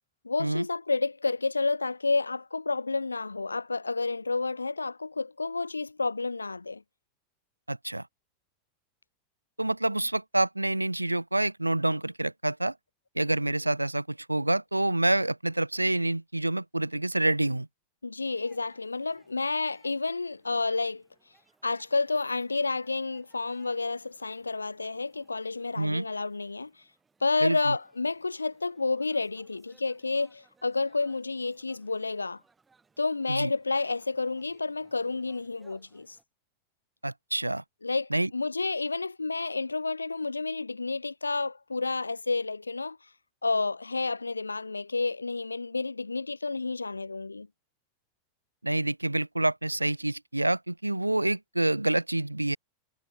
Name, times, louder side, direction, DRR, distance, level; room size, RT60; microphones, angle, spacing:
voice 1, 0.2-6.8 18.0-21.0 21.6-26.7 27.2-32.4 33.0-36.2 37.8-43.0 43.4-47.5, left 3 dB, 80° left, 0.5 m, -30 dB
voice 2, 7.7-8.1 9.6-12.7 13.2-17.7 25.8-26.1 27.4-27.8 33.3-33.5 37.0-37.6 38.1-38.3 48.6-52.6, right 1 dB, 85° right, 0.4 m, -27 dB
sound 1, 18.2-36.2, right 4 dB, 15° right, 6.8 m, -67 dB
figure-of-eight pair, 90°, 0 cm